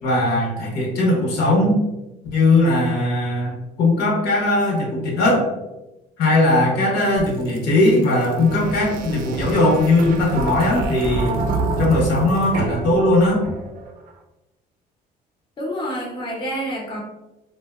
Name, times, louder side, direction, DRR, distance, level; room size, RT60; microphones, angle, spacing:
voice 1, 0.0-1.8 2.3-5.6 6.2-11.5 11.8-13.4, left 2 dB, 80° left, -2 dB, 0.8 m, -19 dB
sound 1, 7.2-13.9, right 3 dB, 60° right, 0.4 m, -27 dB
voice 2, 15.6-17.0, equal, 30° left, -1 dB, 0.6 m, -28 dB
2.7 x 2.0 x 2.2 m, 0.99 s
cardioid pair, 110°, 17 cm